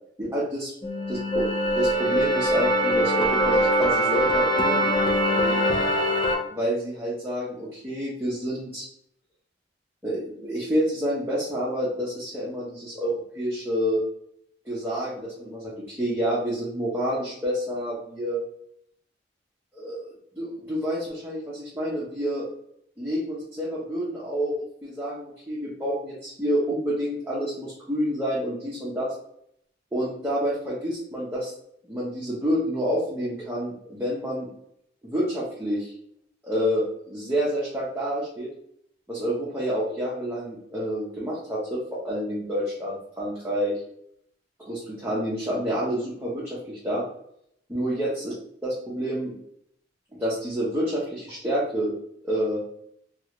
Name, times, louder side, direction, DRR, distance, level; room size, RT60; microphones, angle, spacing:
voice 1, 0.2-0.7 1.1-5.6 6.5-8.9 10.0-14.0 14.6-18.4 19.7-22.5 23.0-29.1 29.9-31.5 31.9-34.5 35.0-35.9 36.4-38.5 39.1-43.8 44.6-47.0 47.7-48.3 48.6-49.3 50.2-51.9 52.2-52.6, equal, 15° right, -8 dB, 0.7 m, -28 dB
sound 1, 0.8-6.4, equal, 25° left, 0.5 m, -22 dB
3.1 x 2.4 x 2.9 m, 0.72 s
head